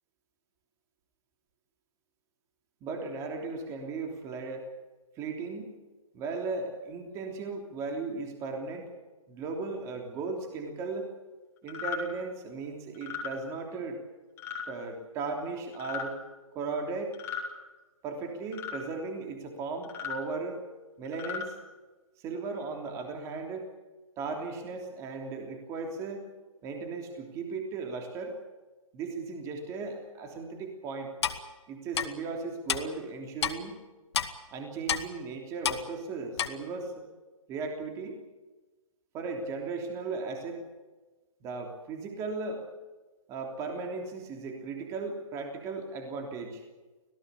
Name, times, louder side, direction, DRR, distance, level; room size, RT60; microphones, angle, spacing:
voice 1, 2.8-4.7 5.1-5.8 6.1-8.9 9.3-11.1 11.6-14.0 14.7-16.1 16.5-17.2 18.0-20.6 21.0-21.6 22.2-23.7 24.2-26.3 26.6-28.4 28.9-31.1 31.7-33.7 34.5-37.1 37.5-38.2 39.1-40.6 41.4-42.6 43.3-46.6, right 4 dB, 15° right, 3 dB, 3.2 m, -36 dB
sound 1, 11.7-12.0 12.9-13.3 14.4-14.7 15.7-16.1 17.1-17.5 18.5-18.8 19.8-20.2 21.0-21.5, left 7 dB, 15° left, 3.6 m, -36 dB
Clock, 31.2-31.4 31.9-32.1 32.7-32.8 33.4-33.5 34.1-34.3 34.9-35.0 35.6-35.8 36.4-36.5, left 8 dB, 50° left, 2.1 m, -28 dB
26.5 x 17.5 x 8.3 m, 1.2 s
hypercardioid pair, 155°, 18 cm